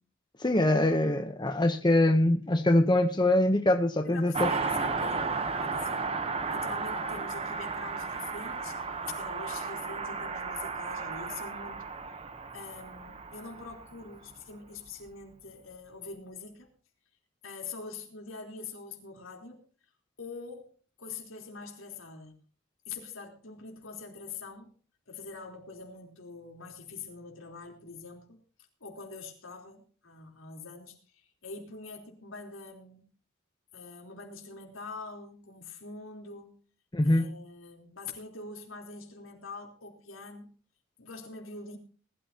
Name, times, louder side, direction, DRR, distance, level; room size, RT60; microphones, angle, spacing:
voice 1, 0.4-4.5 36.9-37.3, left 1 dB, 20° left, 0.8 m, -24 dB
voice 2, 4.0-6.2 6.5-11.9 12.5-16.7 17.4-19.6 20.2-20.7 21.0-22.4 22.9-24.7 25.1-28.4 28.8-33.1 33.7-36.6 37.0-40.5 41.0-41.8, left 4 dB, 80° left, 3.7 m, -44 dB
Car passing by, 4.3-14.3 14.6-14.7, right 4 dB, 30° right, 0.9 m, -34 dB
20.0 x 13.0 x 2.9 m
head